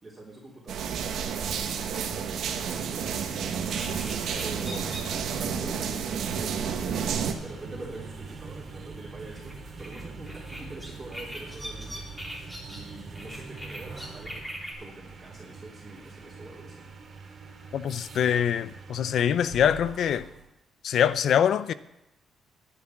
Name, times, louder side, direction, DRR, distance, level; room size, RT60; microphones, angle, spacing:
voice 1, 0.0-14.5 14.8-16.9, right 2 dB, 20° right, 3.4 m, -45 dB
sound 1, 0.7-7.3, right 7 dB, 70° right, 1.4 m, -30 dB
sound 2, 3.5-20.5, right 4 dB, 40° right, 2.7 m, -44 dB
sound 3, 3.7-14.7, equal, 10° left, 3.5 m, -43 dB
voice 2, 17.7-20.3 20.8-21.7, left 9 dB, 65° left, 0.6 m, -24 dB
11.0 x 10.0 x 5.9 m
cardioid pair, 90°, 0 cm